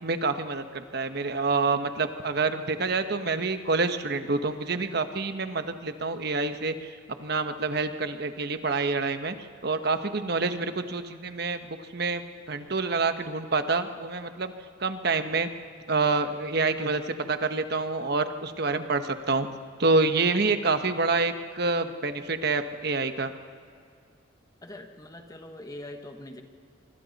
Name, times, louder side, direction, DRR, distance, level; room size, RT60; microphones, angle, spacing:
voice 1, 0.0-6.9 7.2-9.3 9.6-14.5 14.8-15.5 15.9-19.5 19.8-23.3, right 3 dB, 55° right, 8 dB, 1.1 m, -27 dB
voice 2, 24.6-26.4, left 1 dB, 20° left, 5 dB, 1.3 m, -42 dB
25.5 x 25.0 x 4.1 m, 2.3 s
head